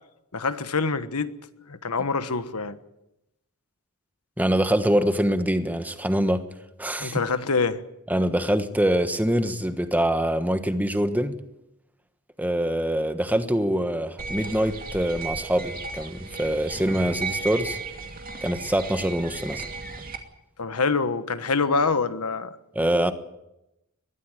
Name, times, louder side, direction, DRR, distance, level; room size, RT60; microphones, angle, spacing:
voice 1, 0.3-1.3 1.7-2.8 7.0-7.8 20.6-22.5, left 4 dB, 90° left, 1.3 m, -25 dB
voice 2, 4.4-6.4 6.8-7.2 8.1-11.4 12.4-17.8 18.4-19.6 22.7-23.1, right 1 dB, 5° right, 1.3 m, -24 dB
sound 1, 14.2-20.2, right 3 dB, 40° right, 2.5 m, -35 dB
21.5 x 14.5 x 9.2 m
head